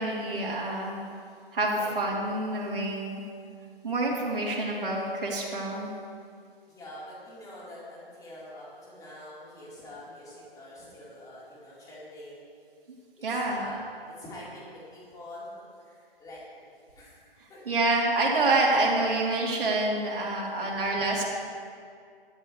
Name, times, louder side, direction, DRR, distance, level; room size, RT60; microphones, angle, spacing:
voice 1, 0.0-1.0 1.5-3.2 3.8-5.9 13.2-13.6 17.7-21.2, right 2 dB, 60° right, -4 dB, 3.7 m, -27 dB
voice 2, 1.1-1.4 1.7-1.9 6.7-12.5 13.3-13.8 14.1-16.7 17.0-17.6 20.5-21.0, left 1 dB, 10° left, -7 dB, 4.1 m, -45 dB
18.0 x 13.5 x 3.3 m, 2.2 s
figure-of-eight pair, 130°, 30 cm